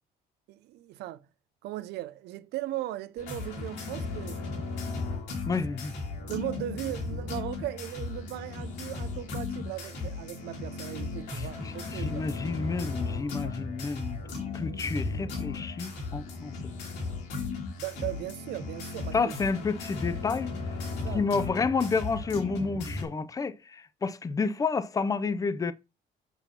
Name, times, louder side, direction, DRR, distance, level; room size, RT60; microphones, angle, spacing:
voice 1, 0.5-1.3 1.6-4.6 6.3-12.3 17.8-19.3 20.9-21.2, right 14 dB, 80° right, 0.6 m, -37 dB
sound 1, 3.2-23.0, left 4 dB, 85° left, 2.6 m, -36 dB
voice 2, 5.5-6.0 11.3-14.2 14.5-16.7 19.1-20.6 21.1-25.7, left 4 dB, 20° left, 0.5 m, -30 dB
7.0 x 2.9 x 5.7 m
cardioid pair, 110°, 17 cm